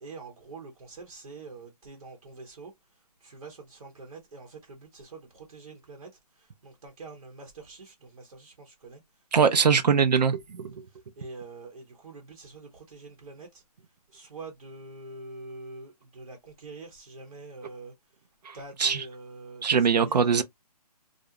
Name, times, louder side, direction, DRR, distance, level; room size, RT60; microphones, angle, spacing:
voice 1, 0.0-2.7 3.2-6.1 6.4-9.0 11.2-13.6 14.1-17.9 18.5-20.4, right 3 dB, 65° right, 0.9 m, -45 dB
voice 2, 9.3-10.7 18.4-19.0 19.6-20.4, right 6 dB, 80° right, 0.6 m, -22 dB
2.5 x 2.0 x 2.8 m
hypercardioid pair, 160°, 21 cm